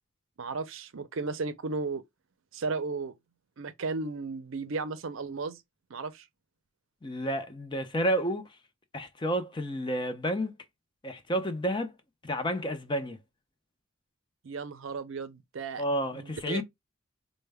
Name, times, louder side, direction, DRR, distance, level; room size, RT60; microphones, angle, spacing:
voice 1, 0.4-2.0 2.5-3.1 3.6-5.6 5.9-6.3 14.4-15.8 16.1-16.6, right 4 dB, 65° right, 0.5 m, -34 dB
voice 2, 7.0-8.5 8.9-10.5 11.0-11.9 12.2-13.2 15.8-16.6, equal, 20° left, 0.5 m, -30 dB
4.4 x 2.1 x 3.3 m
head